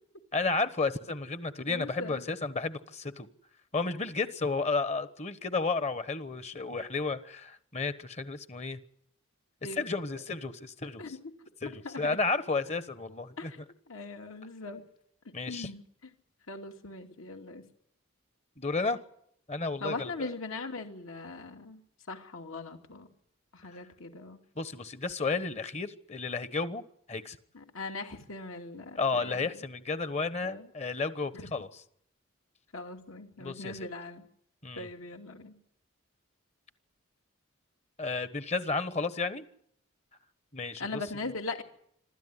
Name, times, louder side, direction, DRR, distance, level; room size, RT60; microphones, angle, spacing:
voice 1, 0.3-3.3 3.7-8.8 9.7-11.1 11.6-13.5 15.3-15.7 18.6-19.0 19.5-20.3 23.7-23.8 24.5-26.8 27.1-27.4 29.0-31.7 33.4-33.9 34.6-34.9 38.0-39.4 40.5-41.0, left 3 dB, 30° left, 13 dB, 1.2 m, -32 dB
voice 2, 1.7-2.2 9.6-9.8 11.0-11.2 11.8-12.2 13.4-13.6 13.9-14.8 15.5-16.1 16.5-17.6 19.8-23.1 23.5-24.4 27.5-29.5 30.4-30.7 31.3-31.5 32.7-34.2 34.8-35.6 40.8-41.6, left 3 dB, 70° left, 3 dB, 2.7 m, -40 dB
26.5 x 13.5 x 9.8 m, 0.69 s
head